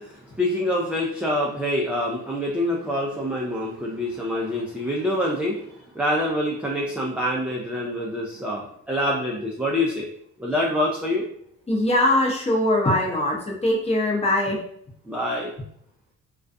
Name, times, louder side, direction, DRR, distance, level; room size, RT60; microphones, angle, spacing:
voice 1, 0.0-5.7 5.9-10.1 10.4-11.3 15.1-15.5, left 1 dB, 5° right, -3 dB, 0.4 m, -26 dB
voice 2, 11.7-14.6, left 1 dB, 20° left, -1 dB, 0.8 m, -21 dB
2.3 x 2.3 x 2.5 m, 0.65 s
cardioid pair, 90°, 30 cm